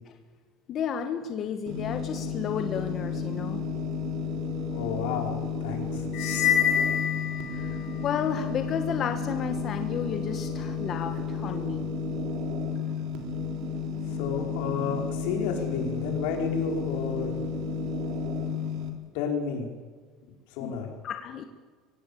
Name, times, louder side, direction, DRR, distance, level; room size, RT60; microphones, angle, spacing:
voice 1, 0.7-3.6 7.5-7.8 8.0-11.9 20.6-20.7 21.0-21.4, left 8 dB, 40° left, 6 dB, 1.5 m, -32 dB
sound 1, 1.7-18.9, left 5 dB, 60° right, 3.5 m, -32 dB
voice 2, 4.7-6.0 14.1-17.3 19.1-19.7 20.5-20.9, left 6 dB, 85° left, 3 dB, 5.0 m, -31 dB
sound 2, 6.1-8.0, left 9 dB, 65° left, 3.1 m, -26 dB
24.0 x 17.0 x 8.6 m, 1.5 s
cardioid pair, 155°, 0 cm